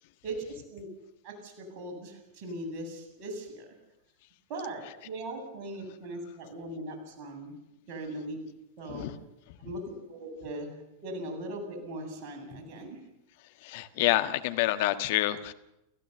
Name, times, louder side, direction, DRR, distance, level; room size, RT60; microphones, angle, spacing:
voice 1, 0.2-0.9 1.2-3.7 4.5-7.5 7.9-8.4 8.8-9.1 9.6-10.7 11.0-13.0, right 1 dB, 40° right, 3 dB, 7.7 m, -39 dB
voice 2, 13.6-15.5, left 16 dB, 50° left, 8 dB, 1.6 m, -27 dB
29.5 x 15.0 x 7.0 m, 0.89 s
figure-of-eight pair, 90°, 0 cm